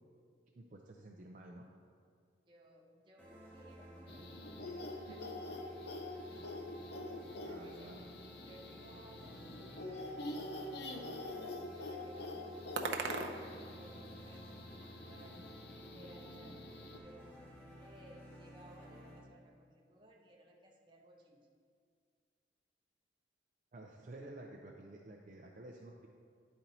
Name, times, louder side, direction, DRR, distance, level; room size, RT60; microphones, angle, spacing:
voice 1, 0.5-1.7 7.4-8.1 23.7-26.1, right 1 dB, 45° right, 0 dB, 0.5 m, -51 dB
voice 2, 2.5-5.6 7.4-8.1 8.4-11.3 11.8-15.4 15.9-21.5, right 1 dB, 25° right, 0 dB, 0.8 m, -60 dB
sound 1, 3.2-19.2, right 1 dB, 10° left, 1.4 m, -54 dB
sound 2, 4.1-17.0, left 2 dB, 65° left, 0.6 m, -46 dB
sound 3, 7.1-14.4, right 4 dB, 85° right, 0.6 m, -47 dB
10.5 x 4.3 x 4.0 m, 2.1 s
head